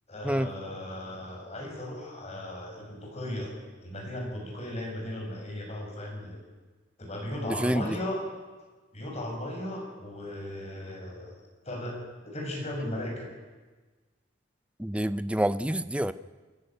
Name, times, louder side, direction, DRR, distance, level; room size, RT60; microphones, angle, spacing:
voice 1, 0.1-3.5 3.8-6.4 7.0-8.2 8.9-11.4 11.6-12.0 12.3-13.3, left 1 dB, 35° left, -1 dB, 7.0 m, -36 dB
voice 2, 7.4-8.0 14.8-16.1, right 1 dB, 5° right, 13 dB, 0.6 m, -27 dB
28.5 x 11.0 x 9.3 m, 1.3 s
head